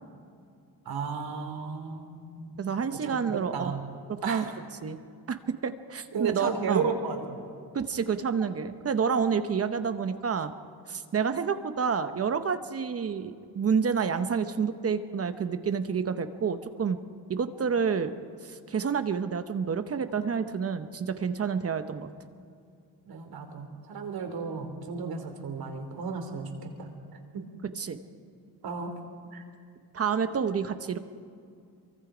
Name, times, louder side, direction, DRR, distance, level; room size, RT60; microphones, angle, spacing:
voice 1, 0.8-2.7 3.0-3.2 3.5-3.8 4.2-4.4 6.1-7.5 23.1-26.9 27.3-27.4 28.6-28.9 29.3-29.4, right 5 dB, 65° right, 4 dB, 3.3 m, -33 dB
voice 2, 2.6-3.8 4.1-4.4 4.8-5.0 5.3-6.9 7.7-10.5 10.9-17.0 17.3-18.1 18.4-22.1 27.8-28.0 29.9-31.0, right 6 dB, 35° right, 10 dB, 0.9 m, -29 dB
27.0 x 23.5 x 5.0 m, 2.4 s
cardioid pair, 150°, 39 cm